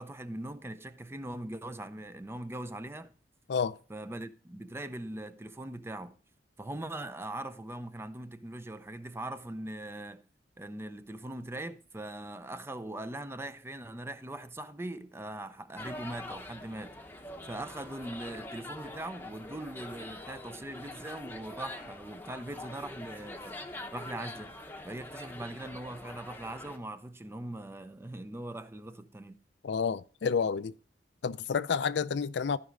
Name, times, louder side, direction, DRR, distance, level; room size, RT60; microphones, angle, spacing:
voice 1, 0.0-3.1 3.9-6.2 6.6-10.2 10.6-17.0 17.4-23.6 23.9-24.6 24.8-29.4, right 1 dB, 15° right, 0.5 m, -41 dB
sound 1, 15.8-26.8, left 1 dB, 10° left, 0.8 m, -44 dB
voice 2, 29.6-30.7 31.2-32.6, left 6 dB, 75° left, 0.4 m, -29 dB
14.0 x 5.1 x 3.7 m
head